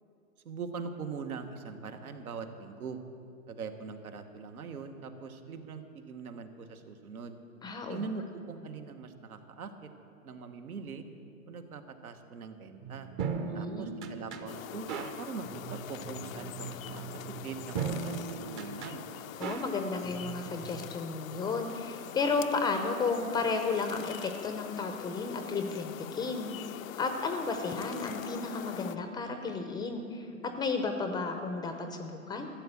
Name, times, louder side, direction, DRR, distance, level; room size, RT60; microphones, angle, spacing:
voice 1, 0.4-3.0 3.5-7.4 7.9-9.9 10.2-11.0 11.5-13.1 13.5-17.1 17.4-18.2 18.5-19.1, right 5 dB, 80° right, 7 dB, 1.4 m, -42 dB
voice 2, 7.6-8.1 13.4-13.9 19.4-30.3 30.6-32.5, left 4 dB, 10° left, 6 dB, 0.5 m, -33 dB
sound 1, 12.8-20.9, right 5 dB, 30° right, 0.8 m, -39 dB
sound 2, 14.5-29.0, left 12 dB, 70° left, 0.6 m, -44 dB
13.5 x 7.3 x 8.8 m, 2.5 s
hypercardioid pair, 125°, 43 cm